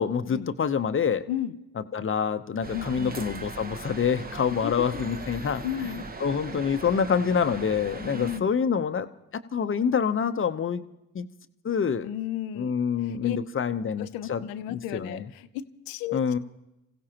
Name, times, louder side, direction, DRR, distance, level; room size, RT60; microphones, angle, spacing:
voice 1, 0.0-1.2 1.9-5.6 6.2-9.1 9.3-10.8 11.1-11.3 11.6-12.1 12.6-15.3 16.1-16.4, left 6 dB, 35° left, 10 dB, 0.9 m, -26 dB
sound 1, 2.6-8.4, right 3 dB, 25° right, 1.1 m, -39 dB
voice 2, 2.7-3.2 4.6-5.0 5.4-6.1 8.1-8.5 12.0-12.7 13.0-13.4 14.0-16.4, left 11 dB, 80° left, 14 dB, 0.7 m, -34 dB
26.5 x 16.0 x 2.9 m, 0.91 s
supercardioid pair, 60°, 34 cm